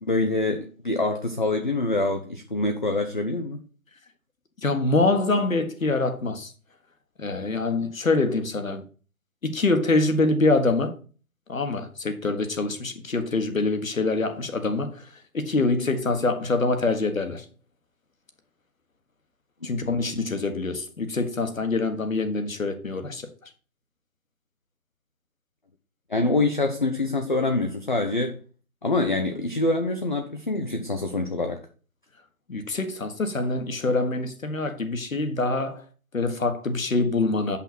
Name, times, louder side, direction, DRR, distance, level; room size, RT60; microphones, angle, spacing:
voice 1, 0.0-3.6 26.1-28.4 28.8-31.6, left 2 dB, 35° left, 0.6 m, -25 dB
voice 2, 4.6-6.5 7.2-8.8 9.4-10.9 11.5-15.1 15.3-17.4 19.6-23.3 32.5-35.8 36.1-37.6, left 3 dB, 65° left, 1.5 m, -25 dB
7.9 x 5.7 x 4.5 m
figure-of-eight pair, 155°, 44 cm